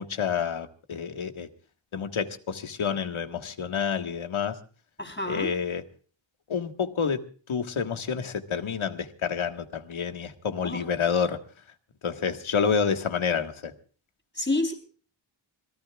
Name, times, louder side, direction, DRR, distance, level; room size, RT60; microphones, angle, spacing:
voice 1, 0.0-1.5 1.9-4.6 5.3-5.8 6.5-7.2 7.5-11.4 12.0-13.7, left 6 dB, 75° left, 6 dB, 1.7 m, -28 dB
voice 2, 5.0-5.5 10.6-10.8 14.3-14.7, left 2 dB, 20° left, 6 dB, 3.8 m, -29 dB
26.0 x 19.0 x 2.4 m, 0.40 s
wide cardioid pair, 105°, 48 cm